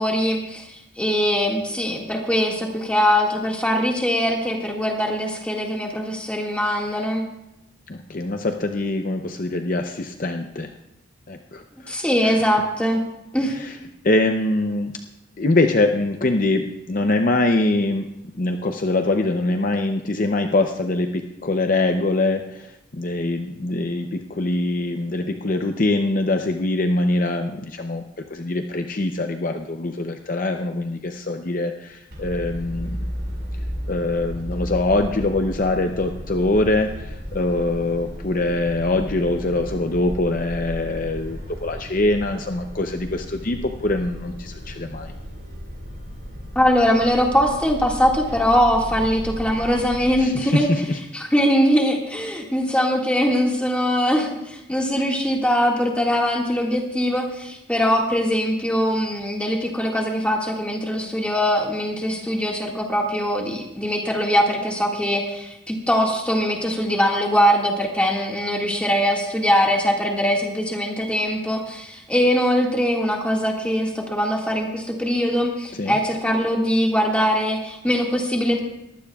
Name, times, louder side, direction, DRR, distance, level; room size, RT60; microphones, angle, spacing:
voice 1, 0.0-7.2 11.9-13.0 13.3-13.5 46.6-50.7 51.1-78.6, equal, 5° left, 0 dB, 1.9 m, -22 dB
voice 2, 7.9-10.7 11.3-12.0 12.2-12.5 13.4-13.8 14.0-14.9 15.4-18.1 18.3-33.1 33.9-45.1 50.2-51.0 75.7-76.0, left 2 dB, 45° left, 5 dB, 0.6 m, -23 dB
sound 1, 32.1-50.2, equal, 60° right, 5.0 m, -34 dB
22.0 x 15.5 x 2.4 m, 0.87 s
head